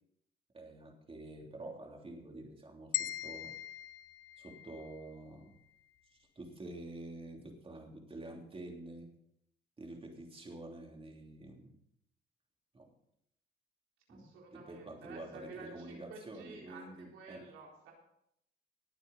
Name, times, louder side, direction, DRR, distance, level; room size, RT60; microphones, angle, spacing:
voice 1, 0.5-3.6 4.4-5.6 6.3-9.1 9.8-11.8 12.7-12.9 14.1-17.5, right 2 dB, 30° right, 1 dB, 3.2 m, -48 dB
sound 1, 2.9-5.1, left 14 dB, 90° left, 0.6 m, -40 dB
voice 2, 14.1-17.9, right 3 dB, 90° right, -1 dB, 4.0 m, -51 dB
19.0 x 8.2 x 4.2 m, 0.76 s
cardioid pair, 90°, 20 cm